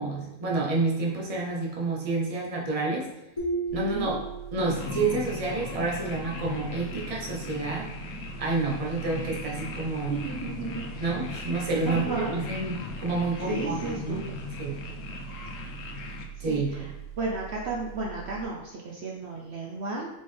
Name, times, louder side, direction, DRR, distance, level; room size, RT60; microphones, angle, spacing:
voice 1, 0.0-3.1 3.7-4.2 4.5-7.9 8.4-10.2 11.0-14.2 14.6-14.8 16.4-16.7, right 3 dB, 30° right, -3 dB, 0.8 m, -29 dB
sound 1, 3.4-5.1, right 3 dB, 25° left, 1.1 m, -33 dB
sound 2, 3.7-18.4, right 9 dB, 55° left, 1.5 m, -43 dB
sound 3, 4.7-16.3, left 4 dB, 80° left, 1.0 m, -38 dB
voice 2, 10.2-11.0 11.8-12.4 13.5-14.2 16.5-16.9 17.2-20.1, right 3 dB, 60° right, -3 dB, 0.9 m, -33 dB
4.2 x 3.7 x 3.3 m, 0.92 s
omnidirectional pair, 1.4 m